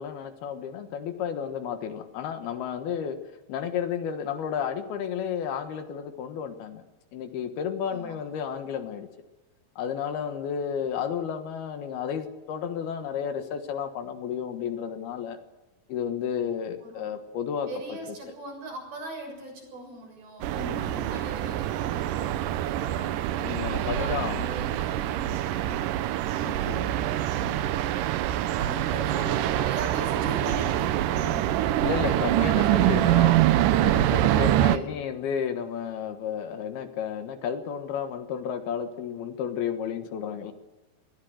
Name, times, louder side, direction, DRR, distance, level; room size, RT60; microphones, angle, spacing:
voice 1, 0.0-3.2 3.5-6.8 7.1-9.1 9.8-15.4 15.9-17.7 20.5-21.1 23.4-24.5 26.4-27.0 31.1-40.5, left 8 dB, 70° left, 8 dB, 3.2 m, -32 dB
voice 2, 16.8-17.2 17.7-25.8 28.6-31.1 31.8-32.8 34.1-35.1, right 1 dB, 60° right, 1 dB, 8.9 m, -40 dB
sound 1, 20.4-34.8, right 13 dB, 90° right, 1.9 m, -25 dB
21.5 x 15.5 x 7.9 m, 1.1 s
omnidirectional pair, 4.8 m